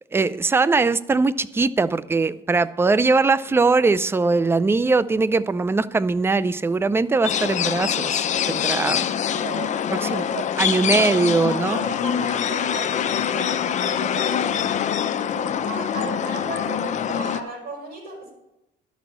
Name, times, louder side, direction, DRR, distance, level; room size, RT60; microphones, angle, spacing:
voice 1, 0.1-9.1 9.9-10.2 10.6-11.8, right 3 dB, 15° right, 16 dB, 0.4 m, -21 dB
sound 1, 7.2-17.4, left 9 dB, 45° left, 0.7 m, -24 dB
voice 2, 9.2-10.4 10.9-14.6 15.1-18.3, right 3 dB, 65° right, 0 dB, 5.4 m, -35 dB
12.0 x 6.2 x 7.2 m, 0.90 s
cardioid pair, 110°, 17 cm